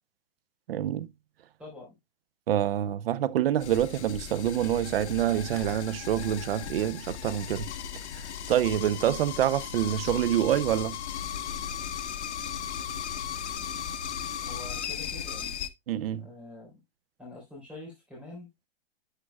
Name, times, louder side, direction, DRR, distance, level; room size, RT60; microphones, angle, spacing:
voice 1, 0.7-1.1 2.5-7.7 8.1-8.2 8.5-11.0 15.9-16.3, right 11 dB, 60° right, 0.7 m, -26 dB
voice 2, 1.6-1.9 14.4-15.6 16.2-16.8 17.2-18.5, left 2 dB, 5° right, 4.1 m, -45 dB
sound 1, 3.6-15.7, left 9 dB, 80° left, 1.0 m, -36 dB
11.5 x 6.0 x 2.2 m
hypercardioid pair, 175°, 34 cm